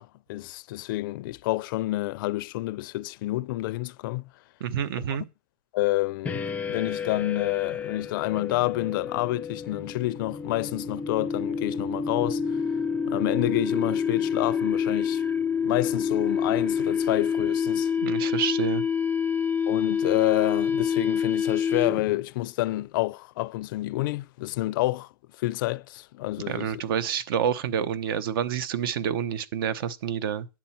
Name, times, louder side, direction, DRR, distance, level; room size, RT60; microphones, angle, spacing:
voice 1, 0.0-4.3 5.1-5.2 5.7-12.6 13.1-15.2 15.6-17.9 19.7-25.1 25.4-26.8, left 18 dB, 65° left, 0.4 m, -28 dB
voice 2, 4.6-5.2 18.0-18.8 26.5-30.5, right 8 dB, 70° right, 0.9 m, -28 dB
sound 1, 6.3-22.2, left 6 dB, 10° left, 0.5 m, -28 dB
10.5 x 7.5 x 4.4 m
supercardioid pair, 140°, 12 cm